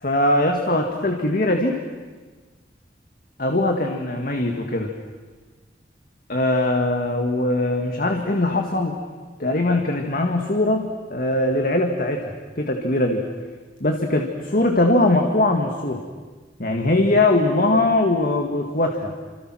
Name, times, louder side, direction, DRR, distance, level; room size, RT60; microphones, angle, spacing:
voice 1, 0.0-1.8 3.4-4.9 6.3-9.0 9.4-13.3 13.8-16.0 16.6-19.1, left 2 dB, 50° left, 3 dB, 2.0 m, -21 dB
29.0 x 27.0 x 6.3 m, 1.4 s
head